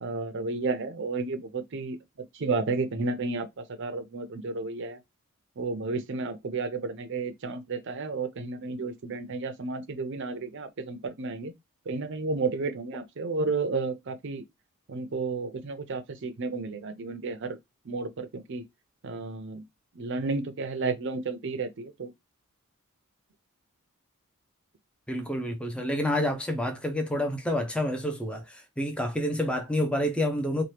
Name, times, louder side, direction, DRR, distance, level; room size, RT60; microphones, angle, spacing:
voice 1, 0.0-2.0 2.3-5.0 5.6-11.5 11.9-14.4 14.9-17.6 17.9-18.6 19.0-19.7 20.0-22.1, right 3 dB, 55° right, 0.5 m, -32 dB
voice 2, 25.1-30.6, left 1 dB, 5° left, 0.5 m, -28 dB
2.8 x 2.2 x 3.2 m
head